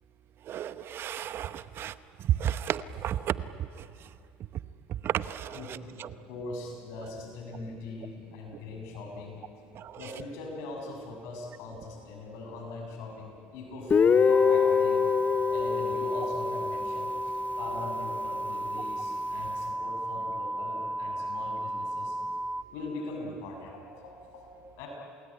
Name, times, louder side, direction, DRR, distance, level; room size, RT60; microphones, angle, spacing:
voice 1, 0.5-1.9 2.2-3.4 3.7-3.9 5.0-6.1 9.7-10.0, right 11 dB, 55° right, 14 dB, 0.9 m, -32 dB
voice 2, 5.5-9.4 10.0-15.1 15.5-22.2 22.7-24.9, left 2 dB, 75° left, 1 dB, 7.0 m, -41 dB
Guitar, 13.9-17.7, left 6 dB, 30° left, 0.7 m, -25 dB
sound 1, 14.3-22.6, right 1 dB, 5° right, 1.0 m, -34 dB
28.5 x 20.5 x 9.9 m, 2.5 s
supercardioid pair, 90°, 5 cm